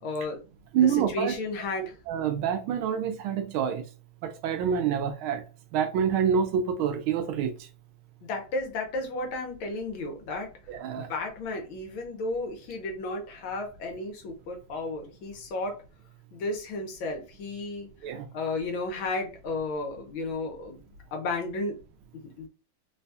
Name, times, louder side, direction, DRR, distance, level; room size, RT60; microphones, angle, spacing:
voice 1, 0.0-0.4 0.8-2.0 8.3-10.5 11.0-15.8 16.3-17.9 18.3-20.8 21.1-21.8 22.1-22.5, left 2 dB, 75° left, 1.6 m, -33 dB
voice 2, 0.7-1.3 1.8-3.8 4.2-5.4 5.7-7.5 10.7-11.1 18.0-18.3, right 8 dB, 80° right, 1.4 m, -27 dB
4.0 x 2.3 x 2.7 m
omnidirectional pair, 2.3 m